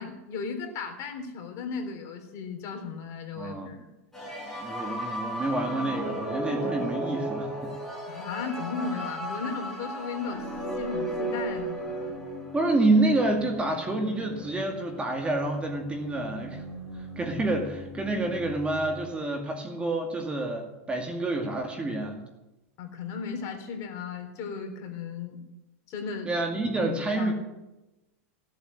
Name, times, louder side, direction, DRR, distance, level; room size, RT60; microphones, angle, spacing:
voice 1, 0.0-3.8 8.1-10.5 10.8-12.1 22.8-25.4 25.9-26.3 26.8-27.3, left 5 dB, 40° left, 3 dB, 3.4 m, -35 dB
voice 2, 3.4-3.7 4.6-7.7 12.5-16.6 17.2-22.2 26.3-27.3, right 2 dB, 15° right, 3 dB, 2.3 m, -28 dB
sound 1, 4.1-19.1, right 1 dB, 5° left, 5.7 m, -36 dB
16.5 x 8.1 x 8.9 m, 1.0 s
hypercardioid pair, 125°, 8 cm